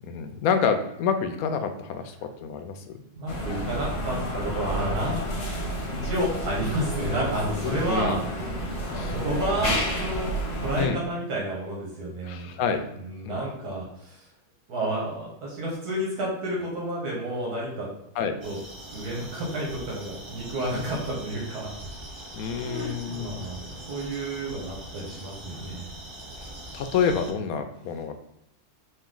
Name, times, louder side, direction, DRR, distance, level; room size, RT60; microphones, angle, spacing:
voice 1, 0.0-2.8 7.6-8.2 8.9-9.1 10.8-11.0 12.2-12.9 13.3-13.4 18.2-18.4 22.3-23.5 26.7-28.1, left 6 dB, 75° left, 7 dB, 1.0 m, -28 dB
voice 2, 3.2-5.2 6.0-10.3 10.6-12.5 13.0-14.2 14.7-17.9 18.4-18.6 18.9-21.7 22.6-25.9 27.8-27.9, right 1 dB, 85° right, -4 dB, 1.7 m, -31 dB
sound 1, 3.3-10.9, equal, 50° left, 1.0 m, -30 dB
sound 2, 18.4-27.3, right 1 dB, 45° right, 0.3 m, -42 dB
4.3 x 2.6 x 3.7 m, 0.82 s
omnidirectional pair, 1.6 m